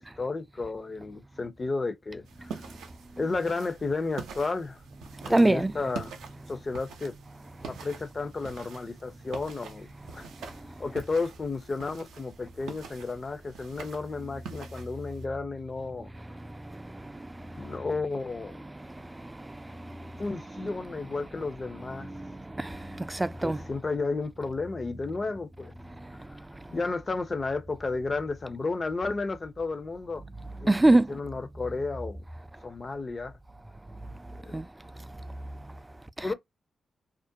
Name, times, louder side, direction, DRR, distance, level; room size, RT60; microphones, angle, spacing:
voice 1, 0.0-2.6 3.2-4.8 5.2-6.1 6.5-7.2 7.6-9.9 10.1-10.3 10.8-16.1 17.6-18.6 20.2-22.1 23.4-25.7 26.7-30.2 30.6-30.8 31.1-32.2 32.6-33.3 34.3-34.6 36.2-36.3, left 3 dB, 45° left, 0.6 m, -32 dB
sound 1, 2.3-15.3, right 5 dB, 85° right, 0.5 m, -45 dB
voice 2, 5.3-5.7 22.1-22.3 22.6-23.6 30.7-31.1 34.5-34.7, right 2 dB, 20° right, 0.3 m, -22 dB
2.4 x 2.1 x 2.6 m
supercardioid pair, 40°, 0 cm